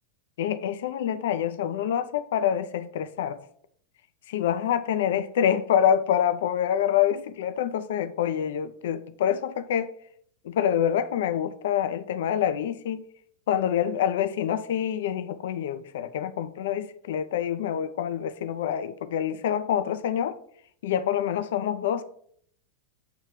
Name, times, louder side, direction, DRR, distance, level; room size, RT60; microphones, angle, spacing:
voice 1, 0.4-3.4 4.3-9.9 10.4-13.0 13.5-20.4 20.8-22.0, left 9 dB, 55° left, 0.4 m, -26 dB
8.4 x 3.2 x 4.8 m
figure-of-eight pair, 90°, 0 cm